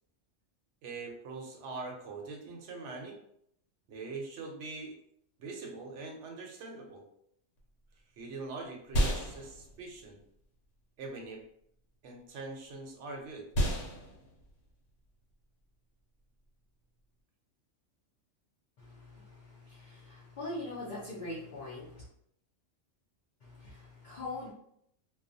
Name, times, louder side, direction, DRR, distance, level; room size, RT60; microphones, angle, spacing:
voice 1, 0.8-3.2 3.9-4.9 5.4-7.0 8.2-10.2 11.0-11.4 12.0-13.5, right 3 dB, 70° right, 1 dB, 0.9 m, -43 dB
sound 1, 7.6-17.2, equal, 85° left, 1.0 m, -37 dB
voice 2, 18.8-22.1 23.4-24.5, left 2 dB, 55° left, -6 dB, 0.5 m, -42 dB
2.3 x 2.2 x 2.5 m, 0.71 s
omnidirectional pair, 1.3 m